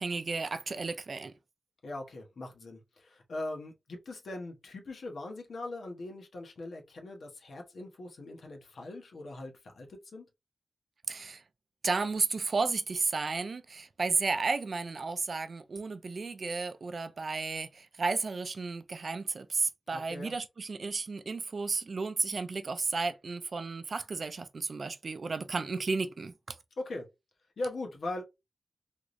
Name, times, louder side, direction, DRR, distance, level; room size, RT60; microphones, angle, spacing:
voice 1, 0.0-1.3 11.1-11.4 11.8-26.6, right 4 dB, 50° right, 0.4 m, -33 dB
voice 2, 1.8-10.3 19.9-20.3 26.8-27.1 27.6-28.2, left 2 dB, 75° left, 1.1 m, -40 dB
3.6 x 3.0 x 2.5 m
wide cardioid pair, 130°, 0 cm